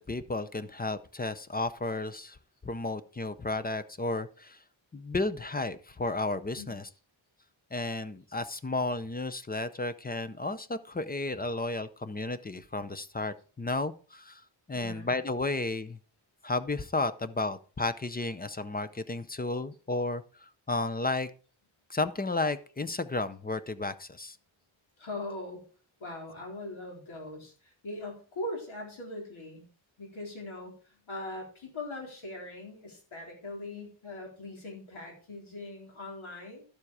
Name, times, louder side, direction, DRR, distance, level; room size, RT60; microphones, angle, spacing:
voice 1, 0.0-2.4 2.6-4.6 4.9-6.9 7.7-14.4 14.7-16.0 16.4-21.3 21.9-24.4, left 2 dB, 20° left, 13 dB, 0.5 m, -33 dB
voice 2, 14.7-15.1 25.0-25.6 26.0-29.6 30.0-36.6, left 2 dB, 80° left, 0 dB, 4.0 m, -41 dB
12.0 x 7.4 x 4.8 m, 0.39 s
wide cardioid pair, 165°, 47 cm